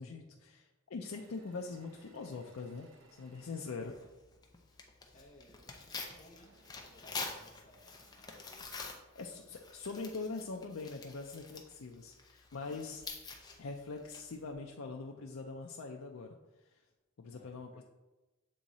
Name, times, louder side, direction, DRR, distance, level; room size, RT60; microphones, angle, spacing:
voice 1, 0.0-3.9 9.2-13.0 13.6-16.3 17.2-17.8, left 4 dB, 85° left, 1 dB, 0.5 m, -43 dB
Engine / Mechanisms, 1.1-4.9 6.3-9.2 9.9-10.0 10.2-10.8, right 2 dB, 70° right, 0.9 m, -67 dB
Tearing, 3.8-14.5, left 4 dB, 20° left, 0.7 m, -48 dB
voice 2, 5.1-8.9 17.2-17.8, left 1 dB, 35° left, -2 dB, 1.1 m, -62 dB
7.6 x 3.7 x 4.1 m, 1.1 s
head